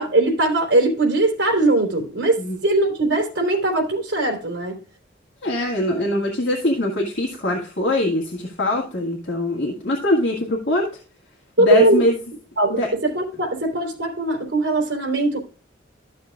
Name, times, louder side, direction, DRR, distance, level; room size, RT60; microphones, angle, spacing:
voice 1, 0.0-4.8 11.6-12.0 12.6-15.4, right 2 dB, 70° right, 3.5 m, -20 dB
voice 2, 5.4-10.9 11.6-12.1 12.8-12.9, left 1 dB, 65° left, 1.8 m, -22 dB
13.5 x 6.6 x 2.4 m
head